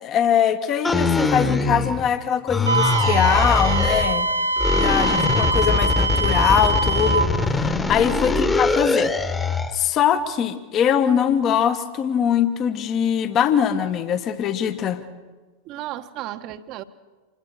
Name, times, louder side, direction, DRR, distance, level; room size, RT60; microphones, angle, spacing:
voice 1, 0.0-4.3 4.7-9.1 9.7-15.0, left 8 dB, 30° left, 10 dB, 1.4 m, -22 dB
sound 1, 0.8-2.2 2.5-4.1 4.6-9.8, left 3 dB, 10° left, 1.5 m, -22 dB
Wind instrument woodwind instrument, 2.6-7.3, right 2 dB, 85° right, 1.7 m, -23 dB
voice 2, 15.6-16.8, right 13 dB, 40° right, 11 dB, 1.2 m, -34 dB
27.0 x 20.5 x 6.7 m, 1.3 s
figure-of-eight pair, 90°, 0 cm